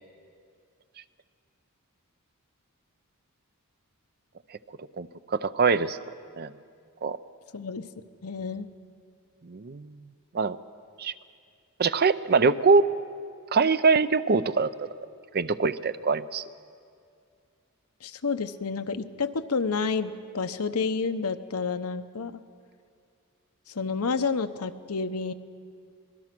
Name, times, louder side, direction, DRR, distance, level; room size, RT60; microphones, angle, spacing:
voice 1, 5.0-6.0 6.4-6.5 7.0-7.2 9.4-10.0 10.3-10.6 11.0-11.1 11.8-12.8 13.5-14.9 15.3-16.4, right 4 dB, 45° right, 14 dB, 0.6 m, -23 dB
voice 2, 7.5-7.9 8.2-8.7 18.0-22.4 23.7-25.3, left 4 dB, 80° left, 9 dB, 0.9 m, -30 dB
25.5 x 20.5 x 6.1 m, 2.3 s
head